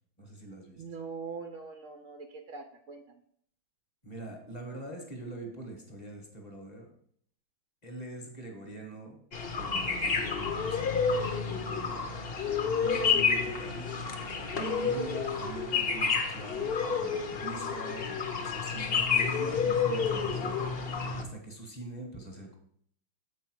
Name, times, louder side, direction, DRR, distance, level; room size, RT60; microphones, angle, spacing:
voice 1, 0.2-0.8 4.0-6.9 7.8-9.2 9.6-12.2 12.8-13.9 14.5-20.6 21.2-22.6, right 2 dB, 25° left, 2 dB, 1.0 m, -43 dB
voice 2, 0.8-3.0 9.7-10.2 17.2-17.4, right 5 dB, 85° right, 6 dB, 0.6 m, -43 dB
sound 1, 9.3-21.2, left 5 dB, 55° left, 0.6 m, -30 dB
7.2 x 4.5 x 6.1 m, 0.64 s
omnidirectional pair, 2.2 m